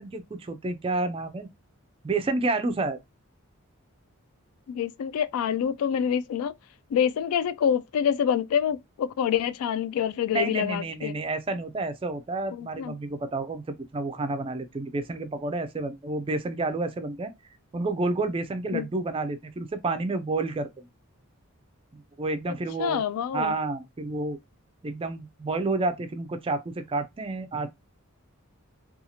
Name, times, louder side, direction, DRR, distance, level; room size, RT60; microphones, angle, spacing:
voice 1, 0.0-1.5 2.0-3.0 10.3-13.6 13.9-17.3 17.7-20.9 21.9-23.0 23.3-24.4 24.8-27.7, right 3 dB, 25° right, 0.3 m, -30 dB
voice 2, 4.7-6.5 6.9-11.1 12.5-12.9 18.7-18.9 22.8-23.5, left 8 dB, 80° left, 0.3 m, -26 dB
2.7 x 2.3 x 2.7 m
head